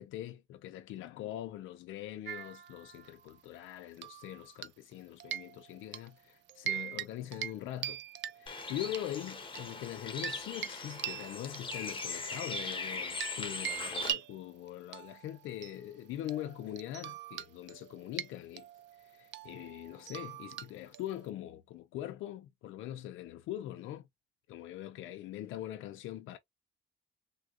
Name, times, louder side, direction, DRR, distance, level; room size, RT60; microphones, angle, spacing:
voice 1, 0.0-8.0 8.3-18.7 19.0-24.1 24.5-26.4, left 13 dB, 85° left, 0.4 m, -42 dB
sound 1, 2.2-3.3 4.0-4.9 5.2-6.1 6.5-7.1 7.3-7.6 7.8-9.0 9.5-13.4 13.6-21.3, right 11 dB, 65° right, 0.4 m, -42 dB
Bird, 8.5-14.1, left 3 dB, 25° left, 0.9 m, -40 dB
3.5 x 2.3 x 2.4 m
cardioid pair, 90°, 20 cm